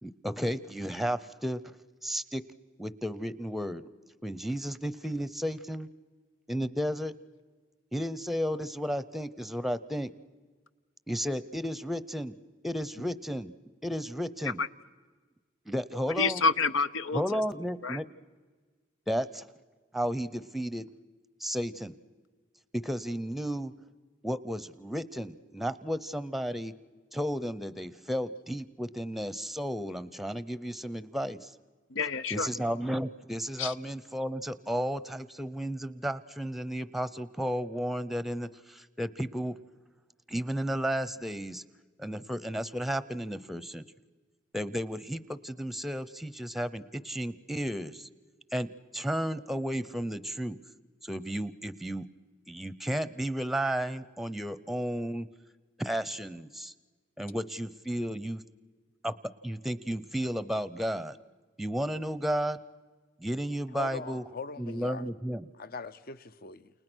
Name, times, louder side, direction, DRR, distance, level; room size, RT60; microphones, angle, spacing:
voice 1, 0.0-1.6 2.0-2.4 2.8-3.8 4.2-5.9 6.5-7.1 7.9-10.1 11.1-12.3 12.6-13.5 13.8-14.6 15.7-16.4 17.1-18.1 19.1-19.5 19.9-20.8 21.4-22.0 22.7-23.7 24.2-26.7 27.1-31.5 32.3-39.6 40.3-41.6 42.0-43.8 44.5-48.1 48.5-48.7 48.9-50.6 51.0-52.1 52.5-55.3 55.8-56.7 57.2-58.4 59.0-59.1 59.4-61.2 61.6-62.6 63.2-64.2 64.6-65.5, equal, ahead, 0.7 m, -33 dB
voice 2, 16.2-17.2 17.8-18.0 31.9-32.5 33.6-33.7, left 4 dB, 85° left, 1.0 m, -28 dB
voice 3, 63.7-65.1 65.6-66.7, left 4 dB, 50° left, 0.8 m, -41 dB
29.0 x 29.0 x 6.3 m
head